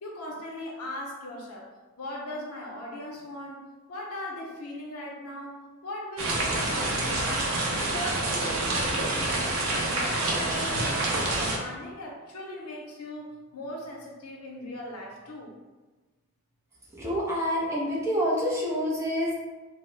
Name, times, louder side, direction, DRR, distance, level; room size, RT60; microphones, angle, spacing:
voice 1, 0.0-1.7 2.0-9.4 9.7-15.5, left 1 dB, 90° left, -1 dB, 0.6 m, -39 dB
sound 1, 6.2-11.6, right 2 dB, 70° right, 0.5 m, -27 dB
voice 2, 16.9-19.3, equal, 15° right, -5 dB, 0.5 m, -27 dB
2.7 x 2.0 x 3.1 m, 1.3 s
head